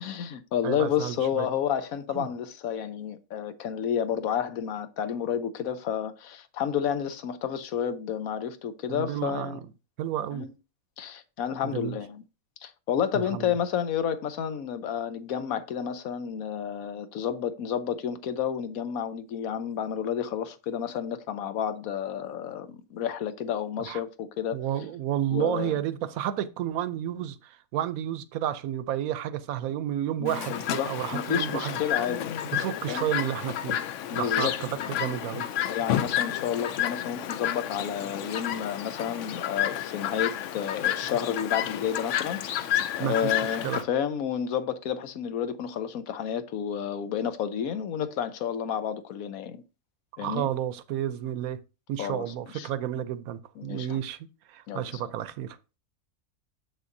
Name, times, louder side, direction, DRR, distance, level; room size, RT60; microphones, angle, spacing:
voice 1, 0.0-9.6 10.3-10.5 11.0-12.2 12.6-24.6 25.3-25.8 30.2-32.4 32.9-33.1 34.0-34.5 35.7-49.6 50.2-50.5 52.0-52.7 53.6-54.0 54.7-54.9, left 8 dB, 85° left, 1.2 m, -31 dB
voice 2, 0.6-1.5 2.1-2.3 8.9-9.6 10.0-10.5 11.6-12.0 13.1-13.6 23.8-24.0 24.5-31.8 32.5-33.8 34.1-35.5 43.0-43.8 50.2-51.6 51.9-55.6, right 11 dB, 85° right, 1.1 m, -31 dB
Chirp tweet, 30.3-43.8, left 11 dB, 70° left, 0.9 m, -31 dB
7.2 x 6.4 x 2.6 m
omnidirectional pair, 1.5 m